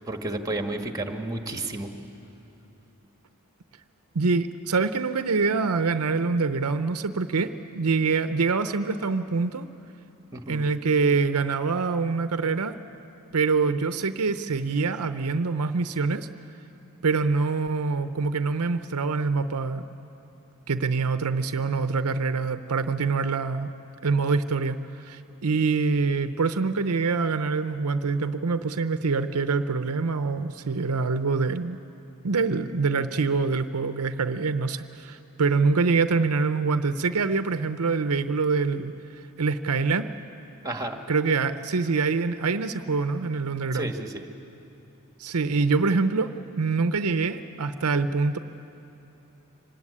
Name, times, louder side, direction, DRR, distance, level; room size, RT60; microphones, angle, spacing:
voice 1, 0.1-1.9 10.3-10.7 40.6-41.0 43.7-44.3, right 2 dB, 15° right, 5 dB, 1.5 m, -31 dB
voice 2, 4.1-9.7 10.5-12.8 13.3-16.3 17.0-19.8 20.7-23.7 24.0-31.8 32.2-38.9 39.4-40.1 41.1-43.9 45.2-46.3 46.6-48.4, right 4 dB, 80° right, 11 dB, 0.7 m, -25 dB
24.5 x 18.5 x 9.8 m, 2.9 s
head